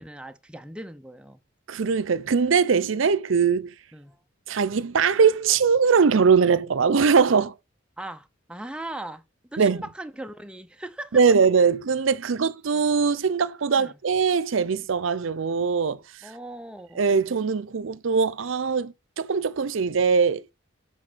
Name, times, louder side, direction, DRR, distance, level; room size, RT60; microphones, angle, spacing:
voice 1, 0.0-1.4 3.9-4.2 8.0-9.2 9.5-11.2 13.8-13.9 16.2-17.0, right 1 dB, 5° right, 0.5 m, -38 dB
voice 2, 1.7-3.7 4.5-7.5 9.6-9.8 11.1-16.3 17.0-20.4, right 5 dB, 75° right, 0.5 m, -21 dB
7.4 x 4.1 x 6.1 m
head